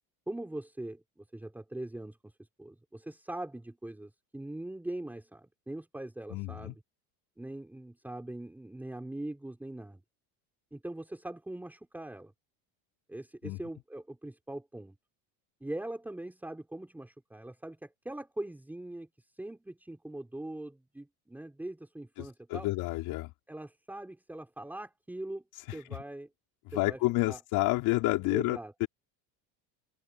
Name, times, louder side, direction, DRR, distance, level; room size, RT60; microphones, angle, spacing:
voice 1, 0.3-2.3 2.6-6.8 7.4-10.0 10.7-12.3 13.1-14.9 15.6-19.1 19.4-22.7 23.5-25.4 25.7-26.3 26.7-27.0 27.3-27.4 28.3-28.7, right 1 dB, 5° right, 3.7 m, -41 dB
voice 2, 6.3-6.8 13.4-13.6 22.2-23.3 25.7-25.8 26.7-28.9, left 21 dB, 60° left, 5.5 m, -30 dB
open air
cardioid pair, 150°, 40 cm